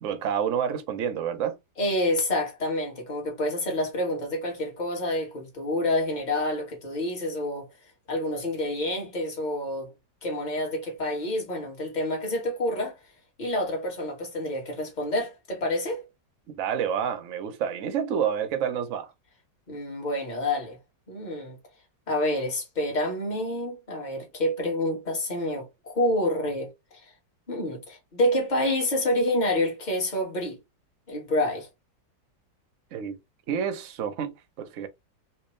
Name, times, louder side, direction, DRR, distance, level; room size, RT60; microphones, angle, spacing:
voice 1, 0.0-1.6 16.5-19.1 32.9-33.2 33.5-34.9, right 8 dB, 60° right, 0.9 m, -29 dB
voice 2, 1.8-7.7 8.1-9.9 10.2-13.0 13.4-16.0 19.7-20.8 21.1-21.5 22.1-26.7 27.5-30.6 31.1-31.7, left 1 dB, 25° left, 1.3 m, -28 dB
3.4 x 3.0 x 3.1 m
omnidirectional pair, 2.0 m